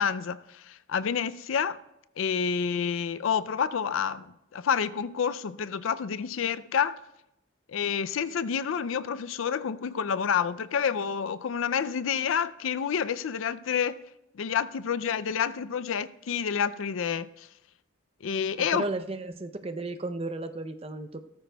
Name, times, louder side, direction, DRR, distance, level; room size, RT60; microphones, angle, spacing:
voice 1, 0.0-1.8 2.2-4.3 4.5-7.0 7.7-14.0 14.3-17.5 18.2-18.8, left 7 dB, 75° left, 0.4 m, -28 dB
voice 2, 18.6-21.2, right 2 dB, 30° right, 0.5 m, -34 dB
16.5 x 14.0 x 2.3 m
head